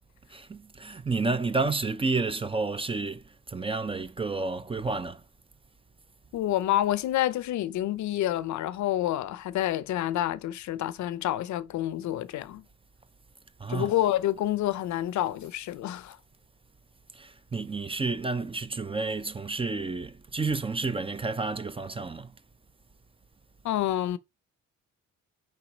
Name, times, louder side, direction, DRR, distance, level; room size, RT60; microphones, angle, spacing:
voice 1, 0.3-5.2 13.6-13.9 17.1-22.3, right 3 dB, 20° right, 0.5 m, -30 dB
voice 2, 6.3-12.6 13.7-16.2 23.6-24.2, left 13 dB, 70° left, 0.6 m, -28 dB
4.7 x 4.4 x 5.0 m
cardioid pair, 90°, 30 cm